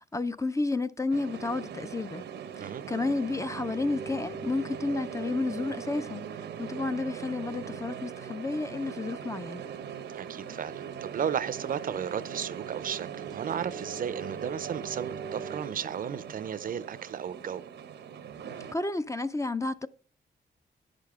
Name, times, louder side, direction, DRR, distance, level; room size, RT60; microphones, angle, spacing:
voice 1, 0.1-2.2 2.6-6.3 6.6-9.6 18.7-19.9, left 3 dB, 15° left, 0.4 m, -31 dB
sound 1, 1.1-18.7, right 7 dB, 85° right, 0.8 m, -40 dB
voice 2, 10.1-17.7, right 8 dB, 55° right, 0.5 m, -34 dB
9.8 x 6.7 x 3.5 m
cardioid pair, 95°, 17 cm